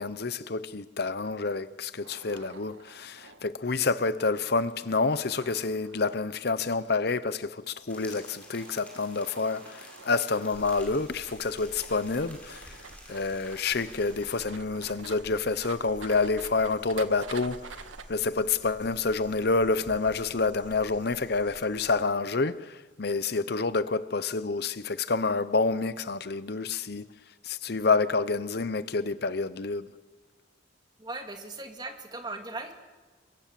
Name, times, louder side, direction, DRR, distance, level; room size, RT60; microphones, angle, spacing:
voice 1, 0.0-12.8 13.1-17.8 18.1-27.0 27.4-29.9, left 4 dB, 55° left, 0.8 m, -28 dB
sound 1, 2.0-18.0, right 5 dB, 90° right, 1.9 m, -49 dB
sound 2, 7.9-14.4, left 1 dB, 5° left, 6.0 m, -51 dB
sound 3, 10.5-22.0, right 1 dB, 40° right, 2.5 m, -51 dB
voice 2, 31.0-32.7, right 2 dB, 20° right, 2.6 m, -38 dB
29.5 x 23.5 x 7.5 m
head